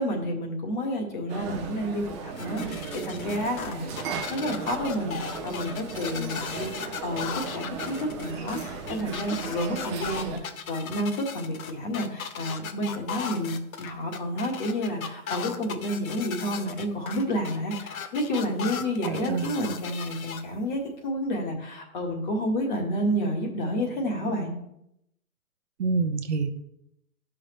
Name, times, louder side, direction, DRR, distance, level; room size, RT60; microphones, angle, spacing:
voice 1, 0.0-24.5, equal, 35° left, 2 dB, 1.7 m, -30 dB
sound 1, 1.3-10.4, right 5 dB, 20° right, 0.9 m, -36 dB
sound 2, 2.4-20.4, left 7 dB, 70° left, 1.0 m, -37 dB
voice 2, 19.0-19.6 25.8-26.5, right 4 dB, 50° right, 7 dB, 0.9 m, -27 dB
12.0 x 5.8 x 3.2 m, 0.79 s
hypercardioid pair, 165°, 44 cm